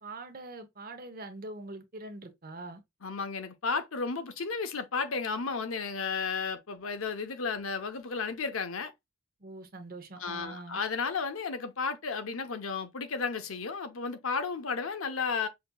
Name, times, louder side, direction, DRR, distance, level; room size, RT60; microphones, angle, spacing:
voice 1, 0.0-2.8 9.4-10.8, right 2 dB, 45° right, 0.8 m, -43 dB
voice 2, 3.0-8.9 10.2-15.5, left 5 dB, 85° left, 0.8 m, -33 dB
5.8 x 2.8 x 2.2 m
head